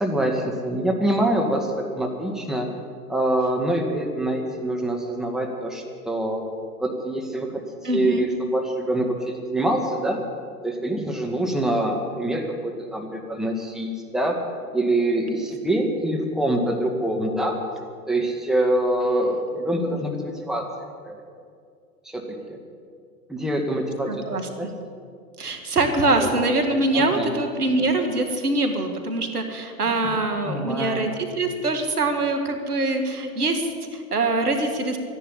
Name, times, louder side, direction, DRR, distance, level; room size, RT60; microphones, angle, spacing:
voice 1, 0.0-2.7 3.1-6.4 6.8-7.5 7.8-10.2 10.6-14.4 14.7-17.6 18.1-20.7 21.0-21.2 22.1-22.2 22.5-22.6 23.3-24.2 24.6-24.7 26.1-26.5 26.9-27.3 30.0-30.2 30.4-31.1, right 1 dB, ahead, 1 dB, 1.9 m, -25 dB
voice 2, 7.8-8.3 24.1-24.5 25.4-35.0, right 2 dB, 90° right, 5 dB, 2.1 m, -24 dB
13.0 x 10.5 x 10.0 m, 2.2 s
hypercardioid pair, 110°, 44 cm